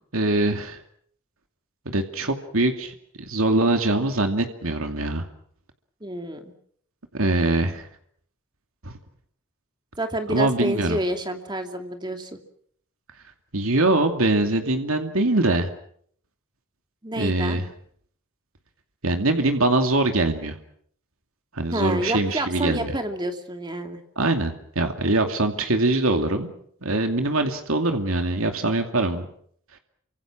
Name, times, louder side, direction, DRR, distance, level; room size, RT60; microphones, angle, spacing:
voice 1, 0.1-0.8 1.9-5.2 7.1-7.9 8.8-8.9 10.3-11.0 13.5-15.7 17.2-17.6 19.0-20.6 21.5-23.0 24.2-26.5 26.8-29.3, right 2 dB, 80° right, 5 dB, 2.5 m, -23 dB
voice 2, 6.0-6.5 10.0-12.4 17.0-17.6 21.7-24.0, right 1 dB, 20° right, 5 dB, 2.7 m, -29 dB
29.0 x 25.5 x 6.2 m, 0.64 s
head